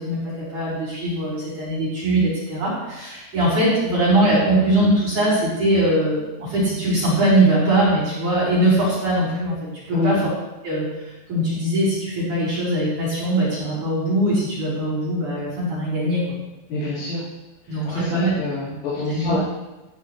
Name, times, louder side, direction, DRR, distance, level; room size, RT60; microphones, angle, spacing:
voice 1, 0.0-9.6 9.9-10.2 10.6-16.4 17.7-18.3 19.1-19.4, right 1 dB, 45° right, -10 dB, 5.3 m, -21 dB
voice 2, 9.9-10.2 16.7-17.2 17.6-19.4, left 2 dB, 80° left, -13 dB, 6.5 m, -26 dB
17.0 x 11.0 x 3.2 m, 1.0 s
omnidirectional pair, 5.2 m